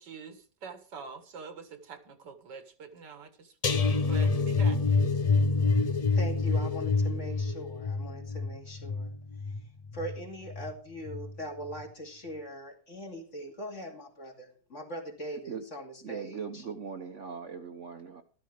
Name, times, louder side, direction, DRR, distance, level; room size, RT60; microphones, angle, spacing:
voice 1, 0.0-3.6 3.9-4.8, right 5 dB, 80° right, 7 dB, 2.2 m, -46 dB
sound 1, 3.6-10.7 11.1-11.4 11.7-11.8, left 4 dB, 75° left, 0.3 m, -27 dB
voice 2, 6.1-9.1 9.9-16.6, equal, 45° left, 1 dB, 2.8 m, -41 dB
voice 3, 16.0-18.2, right 6 dB, 50° right, 5 dB, 1.2 m, -40 dB
13.0 x 13.0 x 3.3 m, 0.41 s
omnidirectional pair, 1.8 m